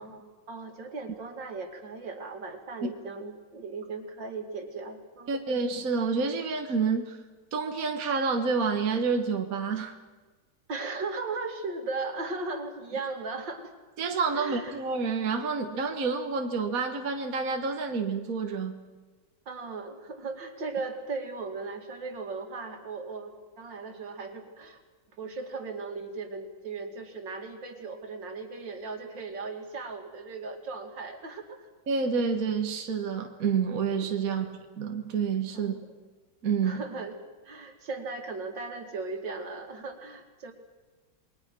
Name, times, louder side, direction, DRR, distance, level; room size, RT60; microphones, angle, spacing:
voice 1, 0.0-5.4 10.7-13.7 14.3-14.8 19.5-24.8 25.2-31.7 34.2-34.5 35.5-35.9 36.6-37.2 37.4-40.5, right 3 dB, 70° right, 4 dB, 3.0 m, -37 dB
voice 2, 5.3-7.2 7.5-9.9 14.0-18.8 31.9-34.5 34.8-35.8 36.4-36.8, right 5 dB, 50° right, 4 dB, 1.7 m, -28 dB
28.5 x 22.0 x 6.1 m, 1.3 s
omnidirectional pair, 2.1 m